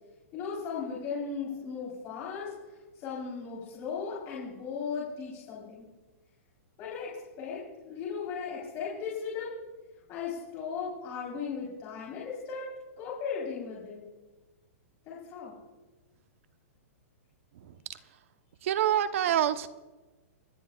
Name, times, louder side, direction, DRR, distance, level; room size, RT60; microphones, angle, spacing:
voice 1, 0.3-2.5 2.9-5.9 6.8-9.6 10.1-12.7 13.0-14.0 15.1-15.5, left 6 dB, 30° left, -5 dB, 4.1 m, -37 dB
voice 2, 17.5-18.0 18.6-19.7, right 10 dB, 60° right, 10 dB, 1.0 m, -27 dB
28.0 x 11.5 x 2.4 m, 1.2 s
hypercardioid pair, 155°, 8 cm